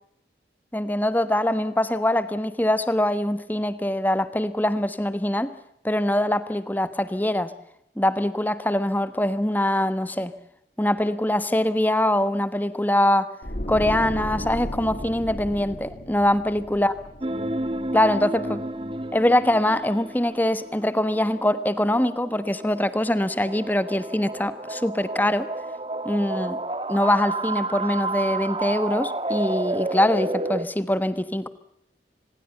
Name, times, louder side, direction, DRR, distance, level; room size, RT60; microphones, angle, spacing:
voice 1, 0.7-5.5 5.8-7.5 8.0-10.3 10.8-13.3 13.7-16.9 17.9-18.6 19.1-25.5 26.0-26.6 26.9-31.5, left 1 dB, 10° left, 13 dB, 1.2 m, -23 dB
sound 1, 13.4-18.5 18.8-19.0, equal, 50° left, 2.7 m, -35 dB
sound 2, 17.2-30.6, right 2 dB, 30° right, 1.3 m, -31 dB
25.5 x 20.5 x 6.9 m, 0.79 s
head